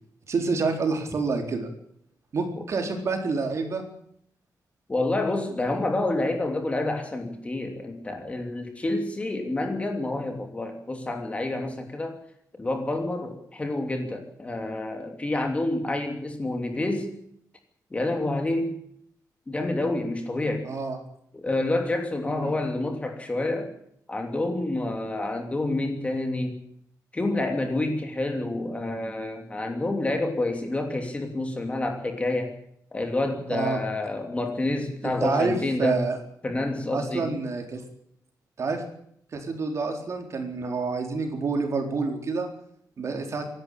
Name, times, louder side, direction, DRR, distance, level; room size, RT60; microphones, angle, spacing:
voice 1, 0.3-1.7 2.3-3.9 20.6-21.0 22.3-22.5 33.5-33.9 35.0-36.2 36.9-37.8 38.6-38.8 39.3-42.5 43.0-43.4, right 4 dB, 45° right, 4 dB, 4.1 m, -28 dB
voice 2, 4.9-12.2 12.6-17.1 17.9-18.8 19.5-20.7 21.3-23.7 24.1-26.6 27.1-32.5 32.9-36.0 36.4-37.3, left 2 dB, 20° left, 4 dB, 3.0 m, -28 dB
26.0 x 12.0 x 8.8 m, 0.69 s
wide cardioid pair, 170°, 7 cm